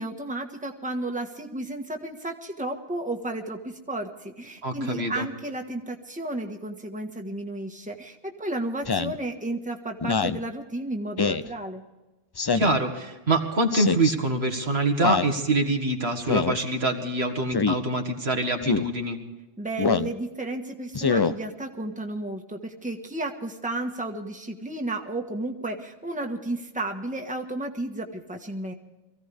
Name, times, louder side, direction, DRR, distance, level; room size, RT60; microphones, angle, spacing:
voice 1, 0.0-11.8 19.6-28.7, right 2 dB, 10° right, 2 dB, 1.4 m, -33 dB
voice 2, 4.6-5.3 12.5-19.2, right 2 dB, 85° right, 4 dB, 2.1 m, -25 dB
Speech synthesizer, 8.9-9.2 10.0-10.4 11.2-11.5 12.4-12.8 13.7-14.1 15.0-15.3 16.3-16.6 17.5-17.8 18.6-18.9 19.8-20.1 20.9-21.3, left 5 dB, 35° left, 0.4 m, -24 dB
23.5 x 16.0 x 3.5 m, 1.1 s
omnidirectional pair, 1.0 m